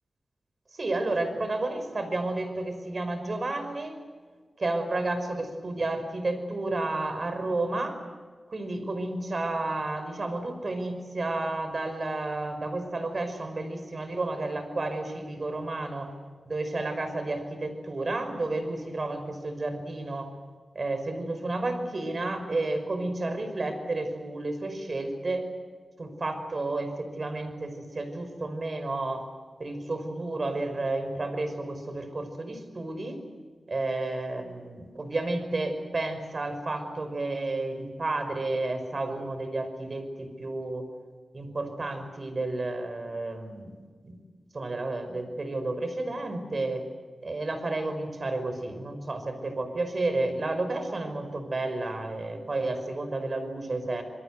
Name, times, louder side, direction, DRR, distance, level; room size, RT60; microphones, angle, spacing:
voice 1, 0.7-4.0 4.6-8.0 8.5-16.1 16.5-20.3 20.8-25.4 26.0-29.2 29.6-33.2 33.7-40.9 41.3-43.7 44.0-44.2 44.5-46.8 47.2-54.0, right 2 dB, 50° right, 8 dB, 5.5 m, -31 dB
27.0 x 23.5 x 8.1 m, 1.5 s
wide cardioid pair, 70°, 0 cm